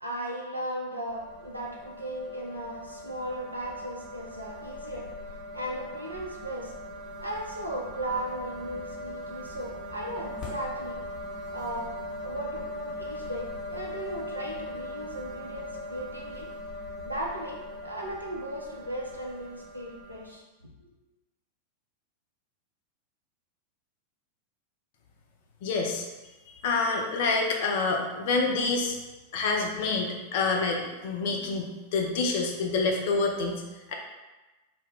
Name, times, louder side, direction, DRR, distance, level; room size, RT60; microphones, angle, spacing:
voice 1, 0.0-5.1 5.5-6.7 7.2-11.0 11.5-11.9 12.2-16.5 17.1-20.4 20.8-20.9, right 1 dB, 85° right, -3 dB, 0.5 m, -36 dB
sound 1, 1.1-20.3, left 1 dB, 25° left, 0.9 m, -40 dB
voice 2, 25.6-26.0 26.5-29.0 29.3-33.6 33.9-34.0, left 3 dB, 50° left, 1 dB, 0.4 m, -27 dB
2.1 x 2.0 x 3.4 m, 1.1 s
figure-of-eight pair, 90°, 0 cm